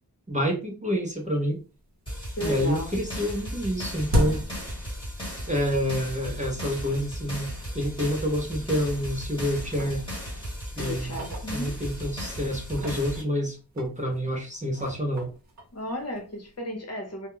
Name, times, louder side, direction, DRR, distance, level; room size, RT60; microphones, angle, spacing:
voice 1, 0.3-1.6 2.4-4.4 5.5-10.0 10.8-11.2 11.5-15.3, equal, 20° right, 0 dB, 0.6 m, -28 dB
sound 1, 1.3-1.4 1.8-2.4 2.6-5.6 5.9-6.0 6.7-6.8 7.3-7.4 7.8-7.9 8.6-9.2 9.5-12.1 12.6-16.5, equal, 45° right, 0.9 m, -34 dB
sound 2, 2.1-13.2, equal, 15° left, 1.2 m, -36 dB
voice 2, 2.3-2.9 10.8-11.8 15.7-17.3, equal, 40° left, 1 dB, 0.8 m, -34 dB
2.2 x 2.2 x 2.9 m, 0.33 s
wide cardioid pair, 100°, 38 cm